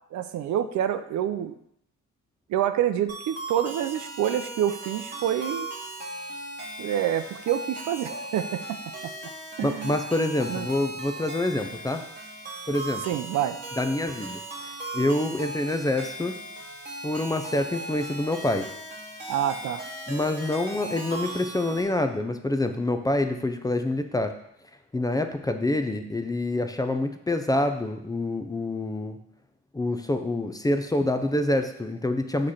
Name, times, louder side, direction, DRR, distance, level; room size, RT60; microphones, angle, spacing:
voice 1, 0.1-1.6 2.5-5.7 6.8-8.8 9.6-10.0 10.5-10.7 13.1-13.6 19.3-19.8, right 10 dB, 70° right, 10 dB, 0.5 m, -27 dB
sound 1, 3.1-21.8, right 1 dB, 35° right, 2.1 m, -38 dB
voice 2, 9.6-12.0 12.7-13.0 13.8-16.3 17.0-18.7 20.1-24.3 24.9-29.2 29.7-32.5, left 1 dB, 10° left, 7 dB, 0.5 m, -26 dB
6.3 x 3.3 x 5.7 m, 0.74 s
cardioid pair, 90°, 30 cm